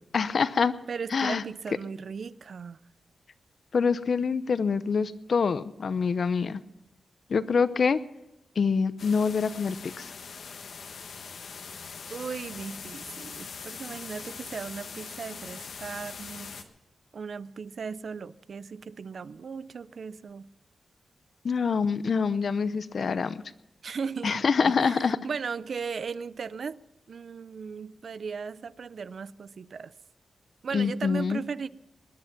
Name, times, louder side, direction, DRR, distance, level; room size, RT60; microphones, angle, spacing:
voice 1, 0.1-0.7 1.1-1.4 3.7-6.6 7.3-8.0 8.6-10.1 21.4-23.4 24.2-25.2 30.7-31.4, left 5 dB, 55° left, 0.6 m, -25 dB
voice 2, 0.9-2.8 12.1-16.5 17.1-20.5 23.8-26.8 27.1-29.9 30.6-31.7, right 5 dB, 60° right, 0.4 m, -37 dB
sound 1, 9.0-16.6, left 5 dB, 75° left, 1.2 m, -42 dB
20.0 x 10.5 x 5.9 m
wide cardioid pair, 140°, 0 cm